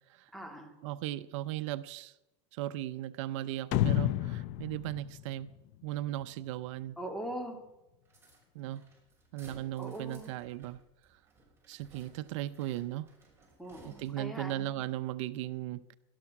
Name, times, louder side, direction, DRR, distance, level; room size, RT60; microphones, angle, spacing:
voice 1, 0.3-0.7 7.0-7.6 9.8-10.3 13.6-14.9, right 1 dB, ahead, 3 dB, 3.0 m, -41 dB
voice 2, 0.8-2.1 2.5-5.5 5.8-7.0 8.5-8.8 9.3-10.8 11.7-13.1 13.8-15.9, right 14 dB, 75° right, 14 dB, 0.6 m, -37 dB
sound 1, 3.7-6.2, left 13 dB, 65° left, 0.8 m, -31 dB
sound 2, 8.0-14.4, right 2 dB, 15° right, 6.1 m, -59 dB
18.0 x 12.5 x 6.0 m, 0.96 s
supercardioid pair, 125°, 16 cm